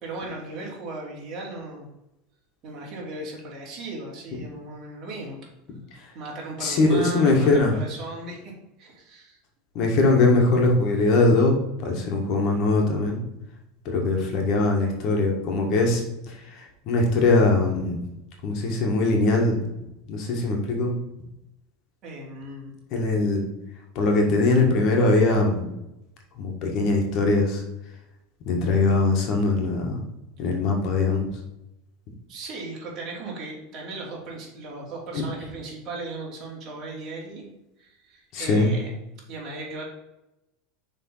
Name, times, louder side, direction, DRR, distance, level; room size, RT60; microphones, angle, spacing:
voice 1, 0.0-1.9 2.6-5.4 6.1-8.5 8.8-9.4 22.0-22.8 32.3-37.4 37.8-38.9 39.3-39.8, right 2 dB, 35° right, -3 dB, 2.6 m, -37 dB
voice 2, 6.6-7.7 9.7-13.2 13.8-16.0 16.3-18.0 18.4-19.6 20.1-20.9 22.9-23.4 23.9-25.7 26.4-27.6 28.4-30.0 30.4-31.2 35.1-35.2 38.3-38.7, left 2 dB, 45° left, 1 dB, 1.7 m, -21 dB
6.4 x 3.8 x 5.6 m, 0.91 s
supercardioid pair, 150°, 0 cm